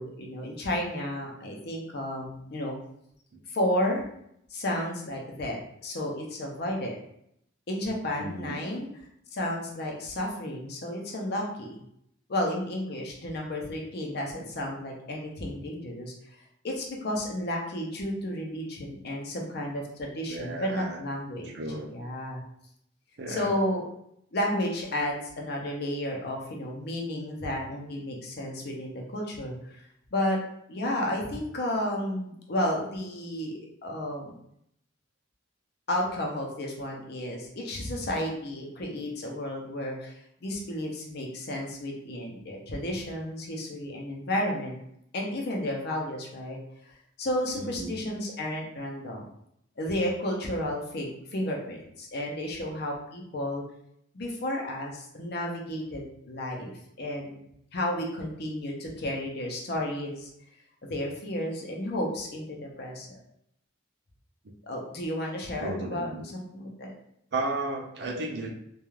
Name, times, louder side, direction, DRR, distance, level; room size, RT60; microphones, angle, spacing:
voice 1, 0.0-2.8 3.5-4.1 4.5-7.0 7.7-8.9 9.3-11.8 12.3-16.1 16.6-21.5 21.9-22.4 23.3-23.8 24.3-29.8 30.1-30.4 30.7-34.3 35.9-40.1 40.4-44.8 45.1-46.6 47.2-49.3 49.8-53.6 54.1-56.7 57.0-57.4 57.7-60.3 60.8-63.2 64.6-66.1 66.3-66.9, left 1 dB, 55° left, -1 dB, 0.6 m, -32 dB
voice 2, 8.2-8.6 20.3-21.0 21.5-21.9 23.2-23.5 42.1-42.2 47.5-48.0 65.6-66.3 67.3-68.5, right 2 dB, 60° right, 1 dB, 0.5 m, -34 dB
2.3 x 2.3 x 3.1 m, 0.74 s
head